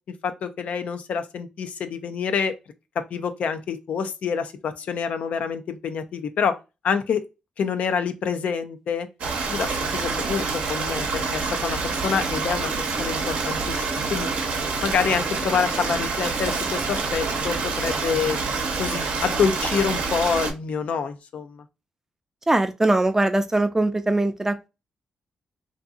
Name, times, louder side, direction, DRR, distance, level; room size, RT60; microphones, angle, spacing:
voice 1, 0.2-2.6 3.0-6.6 6.8-7.2 7.6-9.1 9.5-14.3 14.8-18.5 18.8-21.6, left 6 dB, 70° left, 0.4 m, -27 dB
Stream, 9.2-20.5, right 4 dB, 80° right, 0.7 m, -27 dB
voice 2, 22.5-24.7, right 2 dB, 20° right, 0.4 m, -21 dB
2.7 x 2.6 x 2.3 m
cardioid pair, 65°, 2 cm